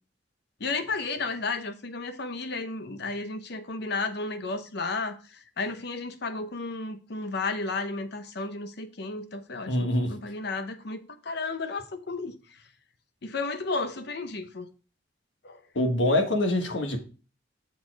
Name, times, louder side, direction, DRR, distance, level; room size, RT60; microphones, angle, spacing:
voice 1, 0.6-12.3 13.2-14.7 15.4-15.6, left 3 dB, 65° left, 0.8 m, -33 dB
voice 2, 9.7-10.1 15.7-17.0, left 1 dB, 85° left, 1.3 m, -24 dB
7.0 x 4.3 x 4.6 m
head